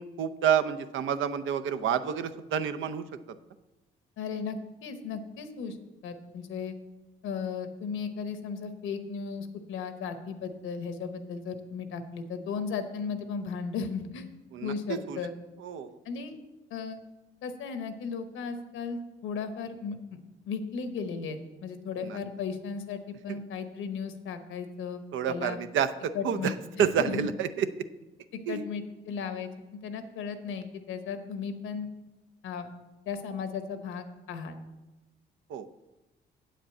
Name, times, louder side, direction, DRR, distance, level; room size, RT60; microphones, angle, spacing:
voice 1, 0.0-3.4 14.5-15.2 15.6-16.0 22.0-22.2 23.3-23.4 25.1-27.8 28.5-28.6 35.5-35.7, right 8 dB, 75° right, 10 dB, 0.6 m, -29 dB
voice 2, 4.2-5.8 6.0-6.7 7.2-14.3 14.6-15.3 16.0-16.4 16.7-17.0 17.4-20.2 20.5-25.0 25.3-25.6 26.1-26.5 27.1-27.3 28.5-29.5 29.8-31.9 32.4-32.7 33.1-34.6, left 5 dB, 85° left, 8 dB, 1.0 m, -35 dB
8.5 x 5.1 x 7.7 m, 1.1 s
cardioid pair, 90°, 20 cm